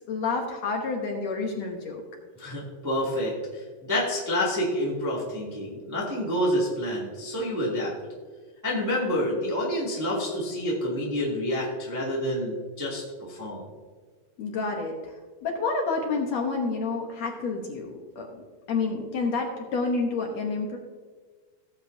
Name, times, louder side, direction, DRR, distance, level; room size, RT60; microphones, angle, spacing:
voice 1, 0.1-2.0 14.4-15.2 15.4-20.8, left 4 dB, 65° left, 1 dB, 1.8 m, -29 dB
voice 2, 2.4-7.9 8.6-13.6, equal, 5° right, -6 dB, 1.6 m, -28 dB
17.0 x 7.6 x 2.7 m, 1.5 s
omnidirectional pair, 4.2 m